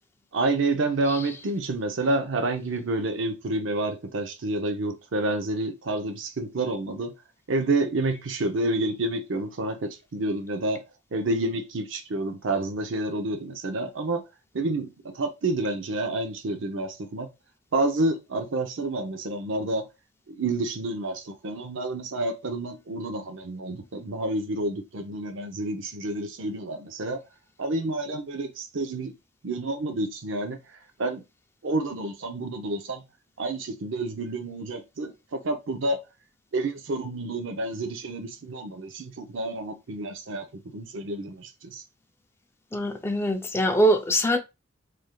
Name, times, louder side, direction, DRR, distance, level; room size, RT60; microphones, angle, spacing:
voice 1, 0.3-7.1 7.5-10.8 11.1-14.2 14.5-17.3 17.7-19.9 20.3-27.2 27.6-29.1 29.4-30.6 31.0-31.2 31.6-33.0 33.4-36.0 36.5-40.5 40.7-41.8, right 2 dB, 75° right, 0.6 m, -29 dB
voice 2, 42.7-44.4, right 1 dB, 15° left, 0.4 m, -23 dB
3.5 x 3.2 x 2.3 m
head